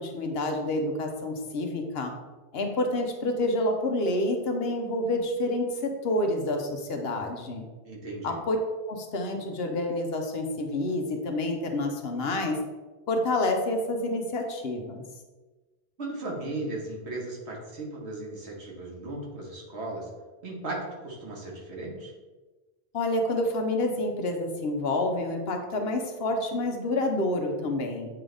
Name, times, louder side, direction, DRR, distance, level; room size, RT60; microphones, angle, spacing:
voice 1, 0.0-2.1 2.5-7.6 8.2-8.6 8.9-12.6 13.1-15.0 22.9-28.1, left 2 dB, 70° left, 4 dB, 1.1 m, -28 dB
voice 2, 7.8-8.4 16.0-20.1 20.4-22.1, right 2 dB, 85° right, -2 dB, 1.7 m, -36 dB
7.8 x 3.8 x 3.4 m, 1.2 s
omnidirectional pair, 1.1 m